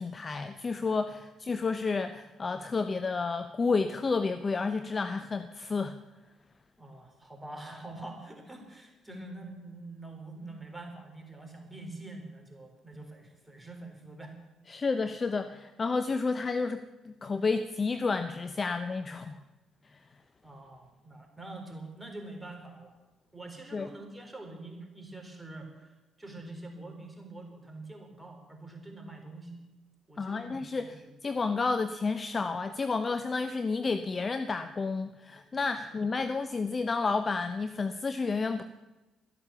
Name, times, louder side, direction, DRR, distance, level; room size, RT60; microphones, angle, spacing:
voice 1, 0.0-6.0 14.7-19.4 19.8-20.0 23.7-23.9 30.2-38.6, left 4 dB, 35° left, 10 dB, 0.7 m, -31 dB
voice 2, 6.8-14.3 20.4-23.0 23.3-29.6 30.1-31.1 35.8-36.0, right 2 dB, 10° right, 2 dB, 4.0 m, -45 dB
13.0 x 11.0 x 6.9 m, 1.1 s
hypercardioid pair, 50°, 0 cm